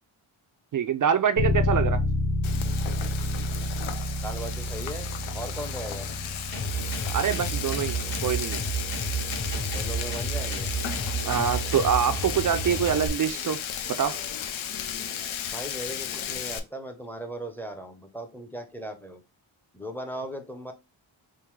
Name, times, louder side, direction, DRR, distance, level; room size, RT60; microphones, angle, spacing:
voice 1, 0.7-2.0 7.1-8.6 11.2-13.6 13.9-14.2, right 8 dB, 45° right, 0.4 m, -25 dB
Bass guitar, 1.4-11.1, left 2 dB, 65° left, 1.1 m, -31 dB
Frying (food), 2.4-16.6, left 9 dB, 80° left, 0.6 m, -34 dB
voice 2, 4.2-6.1 9.7-10.7 15.5-19.2 19.7-20.7, right 1 dB, 5° left, 0.6 m, -38 dB
sound 1, 6.5-13.1, right 3 dB, 50° left, 1.3 m, -31 dB
3.7 x 2.7 x 3.1 m
cardioid pair, 95°, 47 cm